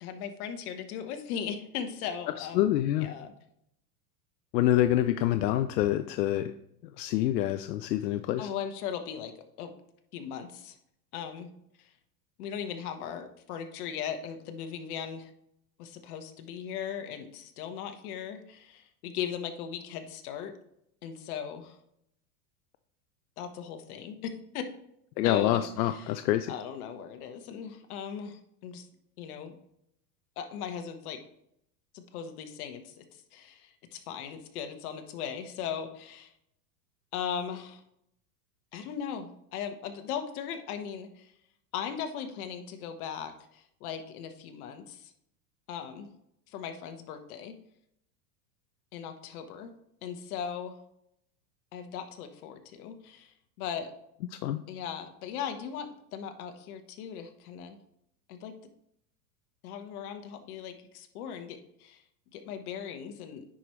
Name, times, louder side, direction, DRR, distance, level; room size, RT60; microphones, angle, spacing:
voice 1, 0.0-2.7 3.0-3.3 8.4-9.3 9.6-9.7 10.1-10.8 11.1-11.5 11.8-11.9 12.4-15.3 15.8-20.5 21.0-21.8 23.4-24.6 25.2-26.1 26.5-28.9 29.2-29.6 30.4-31.2 31.9-36.3 37.1-37.8 38.7-41.3 41.7-45.1 45.7-46.1 46.5-47.5 48.9-49.7 50.0-50.8 51.7-53.9 54.7-57.8 58.3-58.5 59.6-62.0 62.3-63.4, left 8 dB, 60° left, 7 dB, 1.3 m, -38 dB
voice 2, 2.4-3.1 4.5-6.5 7.0-8.5 25.2-26.5 54.3-54.6, left 13 dB, 85° left, 10 dB, 0.6 m, -26 dB
9.9 x 4.9 x 3.1 m, 0.75 s
supercardioid pair, 130°, 49 cm